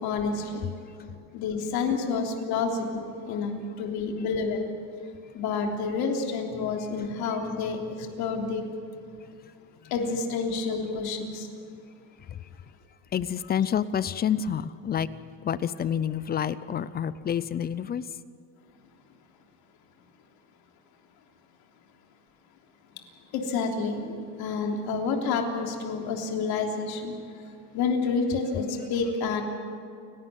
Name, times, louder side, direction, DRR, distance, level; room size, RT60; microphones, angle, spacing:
voice 1, 0.0-0.6 1.3-4.7 5.3-7.8 8.2-8.6 9.9-11.5 23.3-24.1 24.4-27.1 27.7-29.4, left 4 dB, 55° left, 3.5 m, -29 dB
voice 2, 3.2-3.8 7.0-7.1 9.8-9.9 12.3-12.5 13.1-15.1 15.4-18.2, left 8 dB, 20° left, 0.5 m, -29 dB
30.0 x 12.0 x 9.3 m
supercardioid pair, 135°, 44 cm